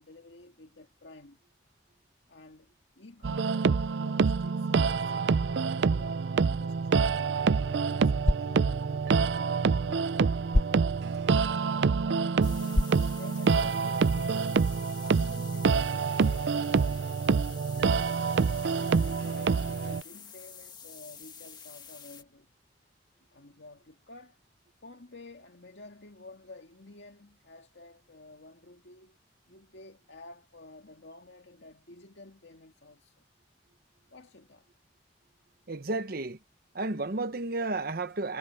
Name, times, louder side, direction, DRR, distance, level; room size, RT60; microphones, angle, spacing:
voice 1, 0.0-1.4 2.3-5.4 5.9-10.5 11.2-11.6 12.0-18.5 18.9-22.5 23.3-24.4 24.8-29.2 29.5-33.2 34.1-34.7, left 2 dB, 80° left, 2.0 m, -51 dB
sound 1, 3.2-20.0, right 5 dB, 75° right, 0.4 m, -26 dB
sound 2, 7.0-13.9, left 1 dB, 40° left, 1.2 m, -34 dB
sound 3, 12.4-22.2, left 7 dB, 25° left, 1.9 m, -48 dB
voice 2, 35.7-36.4 36.7-38.4, right 2 dB, 60° right, 1.1 m, -32 dB
head